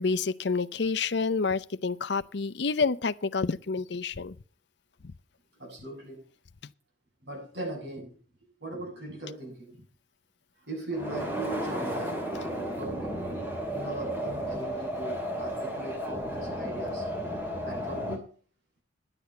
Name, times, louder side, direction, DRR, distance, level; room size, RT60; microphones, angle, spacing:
voice 1, 0.0-4.4, left 4 dB, 60° left, 0.6 m, -28 dB
voice 2, 5.6-6.2 7.2-8.2 8.6-9.8 10.6-13.2 13.7-17.1 17.6-18.3, right 1 dB, 60° right, 8.0 m, -39 dB
sound 1, 10.9-18.2, equal, 10° right, 2.5 m, -33 dB
11.0 x 8.4 x 7.0 m
head